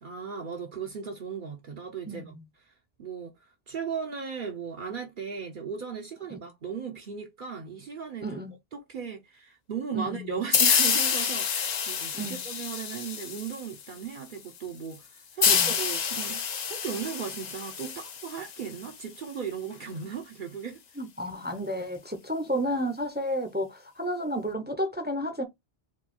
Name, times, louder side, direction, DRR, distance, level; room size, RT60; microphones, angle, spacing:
voice 1, 0.0-2.4 3.0-3.3 3.7-8.4 8.7-20.8, right 6 dB, 55° right, 0.8 m, -37 dB
voice 2, 8.2-8.5 9.9-10.4 12.1-12.4 15.5-15.7 21.0-25.4, equal, 10° right, 0.6 m, -31 dB
sound 1, 10.5-13.9 15.4-18.9, left 7 dB, 50° left, 0.6 m, -27 dB
4.5 x 2.3 x 4.3 m
omnidirectional pair, 1.0 m